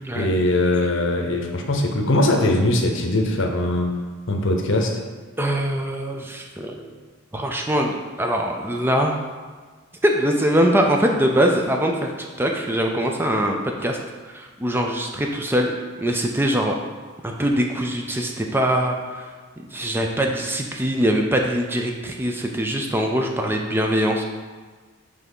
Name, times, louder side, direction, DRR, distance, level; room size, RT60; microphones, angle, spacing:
voice 1, 0.1-4.0 4.3-5.0, left 1 dB, 60° left, 3 dB, 0.8 m, -21 dB
voice 2, 5.4-6.9 7.3-9.2 10.0-12.1 12.4-14.0 14.3-15.7 16.0-16.8 17.2-19.3 19.7-24.2, equal, 10° right, 2 dB, 0.4 m, -22 dB
5.9 x 3.4 x 5.4 m, 1.5 s
head